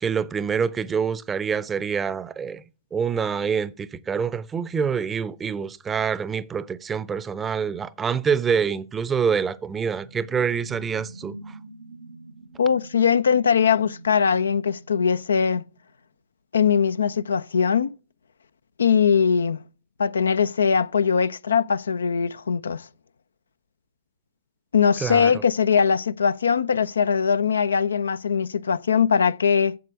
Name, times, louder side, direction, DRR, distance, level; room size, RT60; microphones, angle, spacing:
voice 1, 0.0-2.6 2.9-11.6 25.0-25.3, right 6 dB, 15° right, 0.6 m, -26 dB
sound 1, 9.5-15.8, right 2 dB, 75° right, 0.8 m, -44 dB
voice 2, 12.6-15.6 16.5-17.9 18.8-19.6 20.0-22.8 24.7-29.8, left 6 dB, 75° left, 0.4 m, -21 dB
7.8 x 7.5 x 6.7 m
figure-of-eight pair, 110°, 0 cm